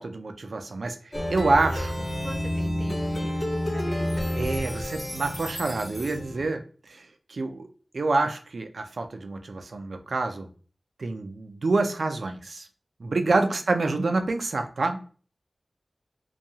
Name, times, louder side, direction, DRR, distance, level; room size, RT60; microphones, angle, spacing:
voice 1, 0.0-2.1 4.4-7.7 7.9-10.5 11.0-12.7 13.0-15.0, right 3 dB, 80° right, 6 dB, 0.4 m, -27 dB
Plucked string instrument, 1.1-6.5, left 1 dB, 25° left, 1.4 m, -30 dB
voice 2, 2.2-4.0 13.5-13.6, equal, 15° right, 4 dB, 0.5 m, -43 dB
2.7 x 2.3 x 2.7 m, 0.39 s
wide cardioid pair, 80°, 0 cm